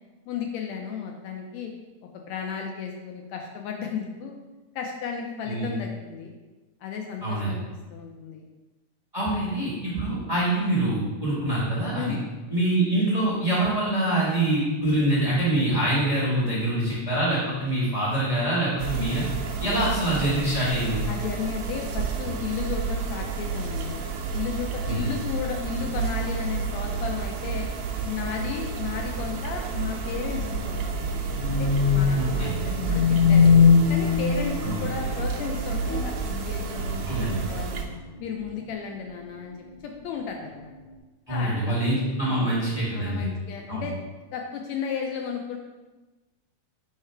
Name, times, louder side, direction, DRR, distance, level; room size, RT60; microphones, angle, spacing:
voice 1, 0.3-1.7 2.3-4.4 4.7-6.3 6.8-8.4 11.9-12.2 19.6-19.8 21.1-24.0 24.3-27.7 28.0-31.2 31.5-33.6 33.9-37.9 38.2-39.6 39.8-40.8 41.3-41.8 42.2-42.6 42.9-44.0 44.3-45.6, left 6 dB, 75° left, 2 dB, 1.7 m, -34 dB
voice 2, 7.2-7.5 9.1-12.1 12.5-19.2 19.6-21.0 24.8-25.1 32.1-32.5 34.6-34.8 37.1-37.4 41.3-43.3 43.7-43.8, right 1 dB, 45° right, -9 dB, 0.5 m, -25 dB
sound 1, 18.8-37.8, right 5 dB, 90° right, 1.3 m, -31 dB
sound 2, 30.1-35.2 35.8-36.2 36.6-37.2 37.8-38.0 38.4-38.5, left 5 dB, 60° left, 1.6 m, -21 dB
4.8 x 4.7 x 4.4 m, 1.2 s
omnidirectional pair, 3.5 m